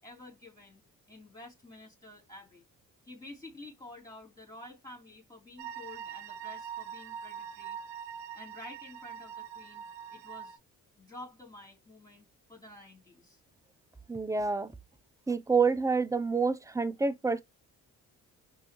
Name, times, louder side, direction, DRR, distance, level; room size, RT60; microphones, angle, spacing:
voice 1, 0.0-2.7 3.0-7.8 8.3-9.8 10.1-10.6 11.0-13.4, left 2 dB, 10° left, 3.2 m, -50 dB
sound 1, 5.6-10.6, right 8 dB, 85° right, 0.7 m, -43 dB
voice 2, 14.1-14.7 15.3-17.4, right 4 dB, 10° right, 0.5 m, -28 dB
5.4 x 2.7 x 3.0 m
supercardioid pair, 60°, 41 cm